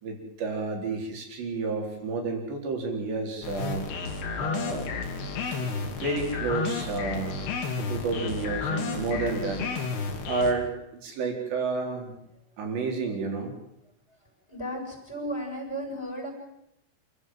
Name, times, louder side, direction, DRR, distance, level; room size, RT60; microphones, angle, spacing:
voice 1, 0.0-3.9 4.4-4.9 5.3-9.6 10.3-12.2 12.6-13.5, right 3 dB, 75° right, 2 dB, 6.4 m, -31 dB
sound 1, 3.4-10.5, left 4 dB, 65° left, 4.6 m, -32 dB
voice 2, 14.5-16.3, equal, 5° left, 2 dB, 7.5 m, -34 dB
28.5 x 15.0 x 7.8 m, 0.82 s
omnidirectional pair, 5.1 m